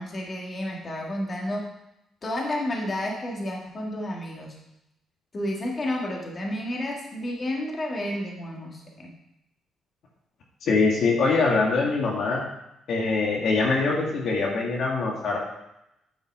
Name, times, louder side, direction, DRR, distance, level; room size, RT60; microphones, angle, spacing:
voice 1, 0.0-1.7 2.2-4.6 5.3-9.1, left 1 dB, 35° left, -1 dB, 2.1 m, -31 dB
voice 2, 10.6-12.4 12.9-15.4, left 3 dB, 65° left, -2 dB, 1.8 m, -23 dB
9.6 x 5.5 x 4.8 m, 0.85 s
cardioid pair, 90°, 0 cm